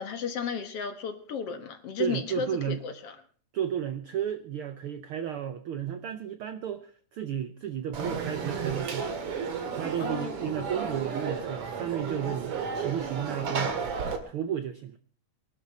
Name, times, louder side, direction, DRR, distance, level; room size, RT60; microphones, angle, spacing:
voice 1, 0.0-3.2 10.0-10.3, left 6 dB, 55° left, 8 dB, 2.1 m, -34 dB
voice 2, 2.0-2.8 3.5-9.1 9.7-13.8 14.3-15.0, right 9 dB, 75° right, 11 dB, 1.2 m, -33 dB
Conversation / Crowd, 7.9-14.2, right 5 dB, 50° right, 2.7 m, -33 dB
23.0 x 12.5 x 4.1 m, 0.43 s
omnidirectional pair, 3.5 m